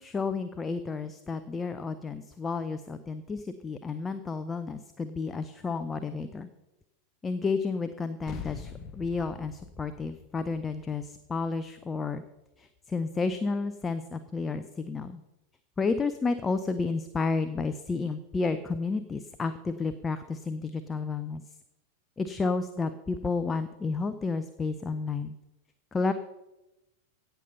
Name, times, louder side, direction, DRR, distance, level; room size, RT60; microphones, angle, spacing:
voice 1, 0.0-6.5 7.2-12.2 12.6-15.2 15.8-21.4 22.2-25.3 25.9-26.1, left 4 dB, 15° left, 10 dB, 0.6 m, -31 dB
sound 1, 8.3-13.1, left 7 dB, 30° left, 1.1 m, -45 dB
17.0 x 6.9 x 5.6 m, 0.96 s
figure-of-eight pair, 90°, 0 cm